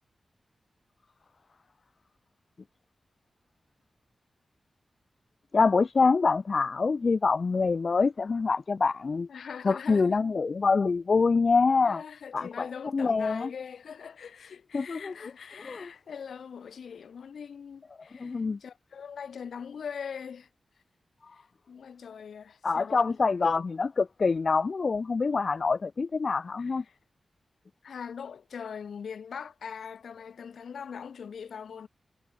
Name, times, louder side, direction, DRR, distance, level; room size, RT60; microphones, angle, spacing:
voice 1, 5.5-9.3 9.6-12.0 12.3-12.7 12.9-13.5 14.7-15.1 15.7-15.9 18.2-18.6 22.6-26.8, left 4 dB, 60° left, 0.9 m, -25 dB
voice 2, 9.3-10.3 11.8-20.5 21.3-23.2 26.6-27.0 27.8-31.9, left 7 dB, 85° left, 2.9 m, -42 dB
cardioid pair, 55°, 0 cm